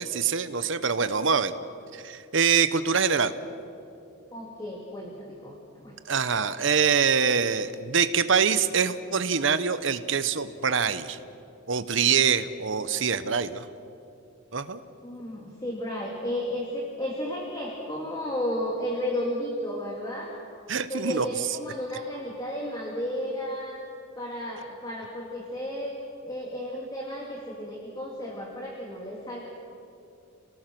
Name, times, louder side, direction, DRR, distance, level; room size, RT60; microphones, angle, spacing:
voice 1, 0.0-1.5 1.9-3.3 6.1-11.2 11.7-13.7 14.5-14.8 20.7-21.3, right 6 dB, 60° right, 12 dB, 0.9 m, -24 dB
voice 2, 4.3-6.0 15.0-20.3 20.9-23.8 24.2-26.0 26.2-29.5, left 1 dB, 20° left, -2 dB, 2.4 m, -33 dB
29.5 x 18.0 x 6.1 m, 2.7 s
head